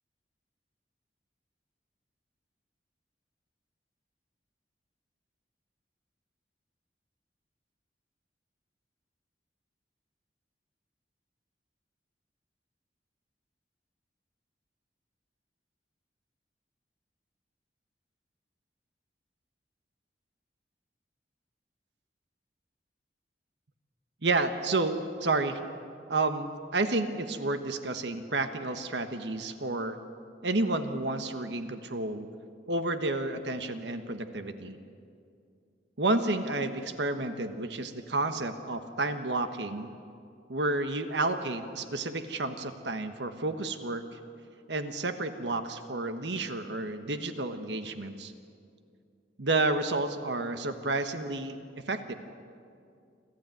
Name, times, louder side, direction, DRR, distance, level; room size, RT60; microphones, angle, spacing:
voice 1, 24.2-25.6 26.1-30.0 30.4-32.3 32.7-34.8 36.0-39.9 40.5-44.2 44.7-48.3 49.4-51.6 51.9-52.1, right 2 dB, 75° right, 8 dB, 1.3 m, -30 dB
26.5 x 15.0 x 9.2 m, 2.4 s
head